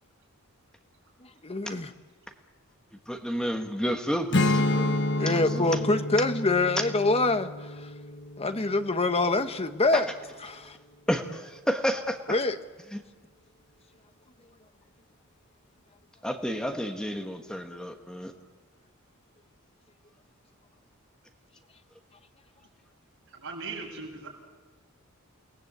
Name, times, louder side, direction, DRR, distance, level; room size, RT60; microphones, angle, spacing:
voice 1, 1.2-1.9 5.2-7.9 8.4-10.1 10.4-10.8 12.3-12.6, left 2 dB, 30° left, 1.2 m, -25 dB
voice 2, 3.1-5.0 5.5-5.9 9.9-10.0 11.1-12.2 12.9-13.0 16.2-18.3, equal, 5° left, 1.5 m, -30 dB
Strum, 4.3-9.7, left 2 dB, 55° left, 1.3 m, -29 dB
voice 3, 23.3-24.3, right 4 dB, 65° right, 7.0 m, -38 dB
29.0 x 19.0 x 8.2 m
head